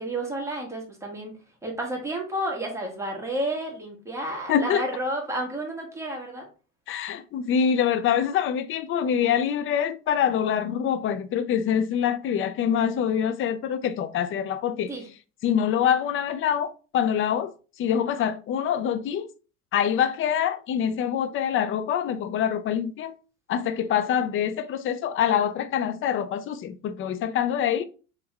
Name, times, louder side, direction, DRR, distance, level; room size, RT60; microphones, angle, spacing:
voice 1, 0.0-1.3 1.6-6.5 14.9-15.0, right 1 dB, 5° right, 1.6 m, -31 dB
voice 2, 4.5-4.9 6.9-14.9 15.4-19.3 19.7-23.1 23.5-27.8, left 8 dB, 35° left, 0.4 m, -25 dB
3.4 x 3.2 x 3.3 m
hypercardioid pair, 80°, 40 cm